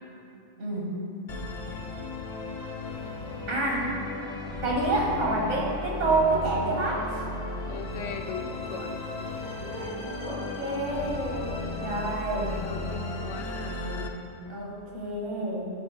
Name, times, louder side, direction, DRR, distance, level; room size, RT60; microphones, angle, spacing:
voice 1, 0.6-1.0 3.5-3.9 4.6-7.2 9.4-12.6 14.5-15.6, right 2 dB, 75° right, -2 dB, 1.8 m, -28 dB
Musical instrument, 1.3-14.1, left 3 dB, 45° left, 0.5 m, -35 dB
voice 2, 7.6-9.0 12.0-14.3, left 5 dB, 90° left, 5 dB, 1.0 m, -40 dB
11.5 x 4.2 x 4.1 m, 2.7 s
omnidirectional pair, 1.2 m